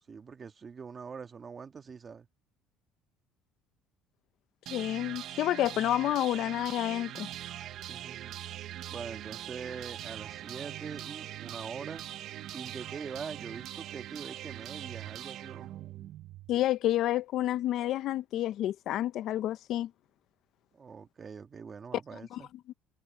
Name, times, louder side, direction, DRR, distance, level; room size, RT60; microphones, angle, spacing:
voice 1, 0.1-2.3 7.9-8.6 8.9-12.1 12.5-15.7 20.7-22.5, right 5 dB, 25° right, 1.7 m, -43 dB
voice 2, 4.7-7.3 16.5-19.9 22.3-22.4 22.7-22.8, left 13 dB, 55° left, 0.6 m, -29 dB
sound 1, 4.7-16.6, right 12 dB, 55° right, 0.6 m, -42 dB
cardioid pair, 140°, 0 cm